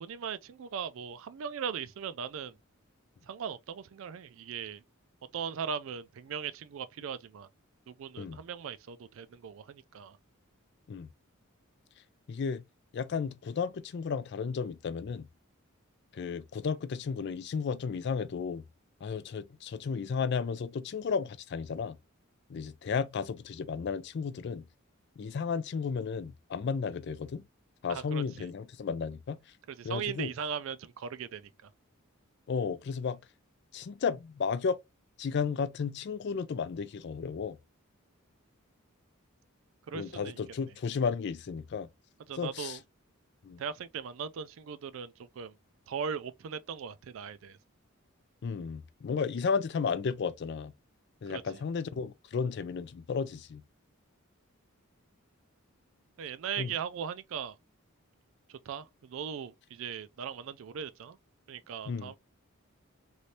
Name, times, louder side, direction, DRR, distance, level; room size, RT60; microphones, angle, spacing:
voice 1, 0.0-2.6 3.2-4.8 5.3-7.5 7.9-10.2 27.9-28.5 29.7-31.5 39.9-40.4 42.3-42.8 43.6-45.5 45.9-47.6 51.3-51.4 56.2-57.6 58.5-61.2 61.5-62.2, right 7 dB, 65° right, 0.3 m, -39 dB
voice 2, 12.3-12.6 12.9-15.3 16.1-18.6 19.0-22.0 22.5-24.6 25.2-27.4 27.8-29.4 29.8-30.3 32.5-33.2 33.7-34.8 35.2-37.6 39.9-41.9 42.4-42.8 43.4-43.6 48.4-50.7 51.2-53.6 56.6-56.7 61.9-62.1, left 5 dB, 50° left, 0.3 m, -33 dB
3.2 x 2.6 x 2.8 m
head